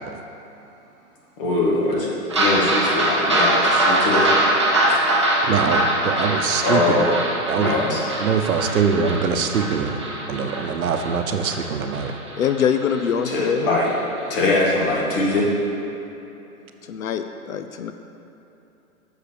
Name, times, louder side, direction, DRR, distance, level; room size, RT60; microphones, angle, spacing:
voice 1, 1.4-4.3 4.9-5.0 6.6-7.1 7.6-8.0 9.8-10.0 13.2-13.9 14.3-15.5, left 2 dB, 40° left, -3 dB, 1.6 m, -22 dB
sound 1, 2.3-13.0 13.4-13.5 13.9-14.0 14.3-14.4, right 1 dB, 20° right, 0.4 m, -22 dB
voice 2, 5.5-6.8 7.5-7.8 8.2-10.0 10.3-12.1, right 6 dB, 70° right, 6 dB, 0.8 m, -23 dB
voice 3, 12.4-13.7 16.9-17.9, left 8 dB, 70° left, 8 dB, 0.6 m, -23 dB
6.5 x 4.9 x 6.9 m, 3.0 s
hypercardioid pair, 160°, 44 cm